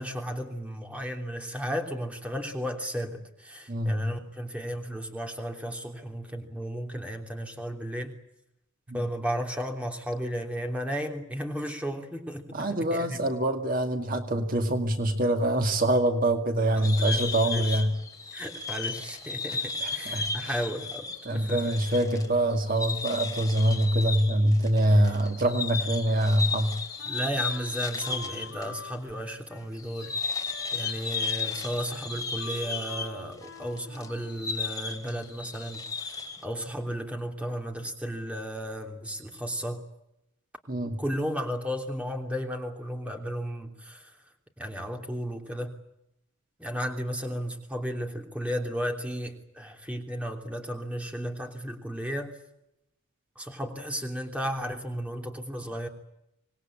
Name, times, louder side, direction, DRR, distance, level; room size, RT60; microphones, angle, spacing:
voice 1, 0.0-8.1 8.9-12.4 12.9-13.2 16.8-17.8 18.3-21.1 21.3-21.6 27.1-30.1 30.7-39.8 41.0-44.1 44.6-45.8 46.6-52.3 53.3-55.9, equal, 5° right, 3 dB, 3.1 m, -34 dB
voice 2, 3.7-4.1 8.9-9.0 12.5-18.0 19.8-20.6 21.3-26.8 40.7-41.0, right 1 dB, 40° right, 5 dB, 2.3 m, -25 dB
sound 1, 16.8-28.7 28.9-29.0 29.7-36.4, left 4 dB, 15° left, 2.9 m, -34 dB
Wind instrument woodwind instrument, 27.0-34.4, left 3 dB, 80° left, 3.6 m, -47 dB
26.0 x 20.0 x 8.8 m, 0.84 s
head